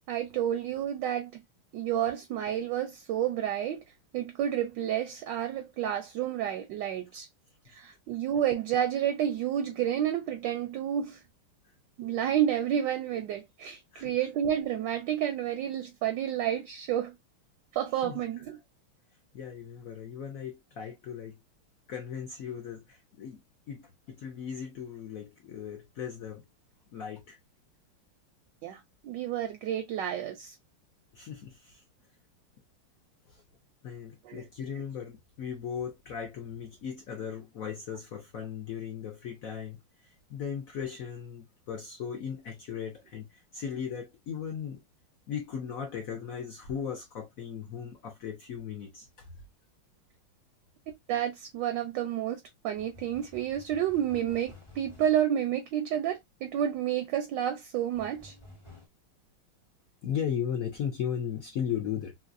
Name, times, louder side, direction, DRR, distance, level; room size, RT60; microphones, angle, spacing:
voice 1, 0.1-1.4 1.7-3.8 4.1-7.3 7.7-11.2 12.0-17.2 17.7-18.6 28.6-30.5 34.2-34.5 51.1-58.3, right 10 dB, 75° right, 1.1 m, -30 dB
voice 2, 19.3-21.4 21.9-26.5 26.9-27.4 31.1-31.8 33.3-33.4 33.8-39.8 40.3-44.8 45.3-49.3 60.0-62.1, left 8 dB, 70° left, 0.8 m, -37 dB
sound 1, 52.7-55.3 57.9-58.9, left 1 dB, 35° left, 0.5 m, -52 dB
3.2 x 2.9 x 2.5 m
omnidirectional pair, 2.3 m